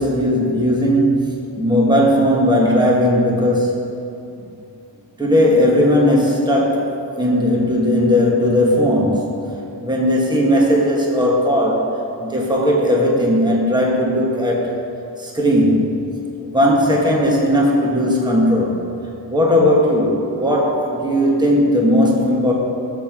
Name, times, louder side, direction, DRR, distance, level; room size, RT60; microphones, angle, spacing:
voice 1, 0.0-3.9 5.2-9.3 9.8-11.9 12.2-14.7 15.2-15.9 16.5-18.8 19.3-22.5, equal, 10° right, -2 dB, 1.4 m, -17 dB
17.0 x 7.6 x 3.7 m, 2.7 s
wide cardioid pair, 140°, 46 cm